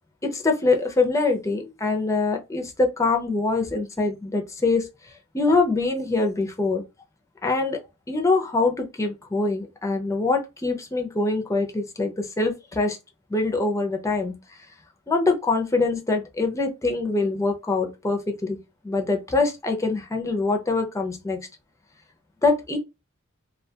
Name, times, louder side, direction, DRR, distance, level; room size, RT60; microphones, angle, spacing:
voice 1, 0.2-4.9 5.3-6.8 7.4-7.8 8.1-13.0 13.3-14.4 15.1-21.5 22.4-22.8, left 3 dB, 15° left, 0.5 m, -24 dB
2.3 x 2.2 x 2.7 m
head